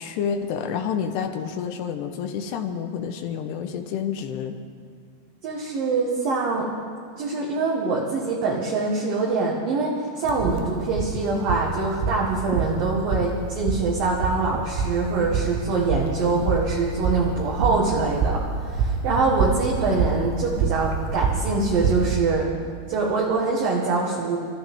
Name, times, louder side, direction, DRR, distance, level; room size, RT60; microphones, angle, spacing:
voice 1, 0.0-4.6, left 7 dB, 80° left, 5 dB, 2.8 m, -29 dB
voice 2, 5.4-6.7 7.2-22.5 22.9-24.4, right 3 dB, 60° right, -3 dB, 2.8 m, -24 dB
sound 1, 10.3-22.2, right 6 dB, 80° right, 3.1 m, -27 dB
29.0 x 14.0 x 3.6 m, 2.2 s
omnidirectional pair, 5.1 m